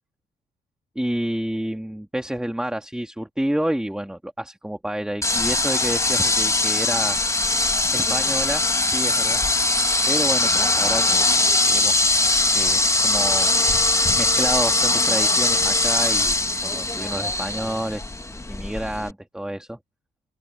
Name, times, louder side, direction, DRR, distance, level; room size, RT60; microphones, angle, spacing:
voice 1, 1.0-7.2 7.9-9.4 10.1-11.2 11.7-12.0 12.5-13.5 14.2-16.4 16.6-18.0 18.5-19.8, right 1 dB, 5° right, 2.2 m, -29 dB
sound 1, 5.2-19.1, left 2 dB, 15° left, 1.4 m, -21 dB
open air
cardioid pair, 90°, 20 cm